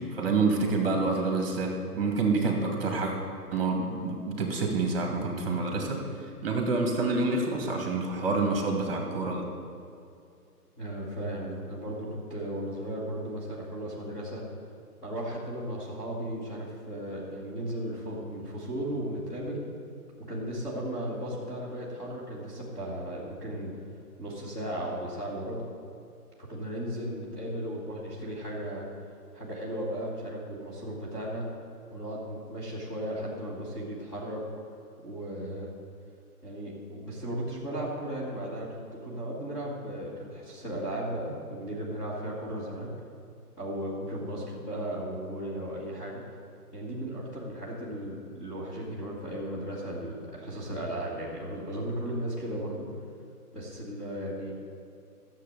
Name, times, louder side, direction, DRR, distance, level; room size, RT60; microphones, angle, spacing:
voice 1, 0.0-3.1 3.5-6.0 6.4-9.4, right 3 dB, 35° right, 1 dB, 2.3 m, -27 dB
voice 2, 10.8-14.4 15.0-19.6 20.3-23.7 24.2-25.7 26.4-28.9 29.3-31.5 31.9-34.4 35.0-35.7 36.4-42.9 43.6-46.2 46.7-52.9 53.5-54.5, right 1 dB, 10° left, -9 dB, 1.3 m, -35 dB
13.0 x 7.6 x 7.1 m, 2.5 s
hypercardioid pair, 160°, 47 cm